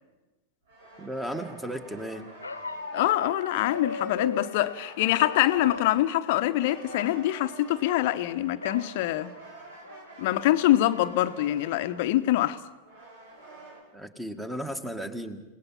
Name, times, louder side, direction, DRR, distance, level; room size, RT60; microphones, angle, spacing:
sound 1, 0.7-13.8, right 2 dB, 65° right, 6.1 m, -47 dB
voice 1, 1.0-2.3 13.9-15.4, equal, 5° right, 1.9 m, -35 dB
Bark, 2.4-4.5 5.2-5.9 6.2-6.5 6.8-7.2 8.6-8.9 9.4-9.5 9.8-10.3, left 3 dB, 80° left, 1.1 m, -36 dB
voice 2, 2.9-9.3 10.2-12.6, left 14 dB, 50° left, 0.9 m, -25 dB
29.5 x 18.5 x 5.8 m
figure-of-eight pair, 90°, 0 cm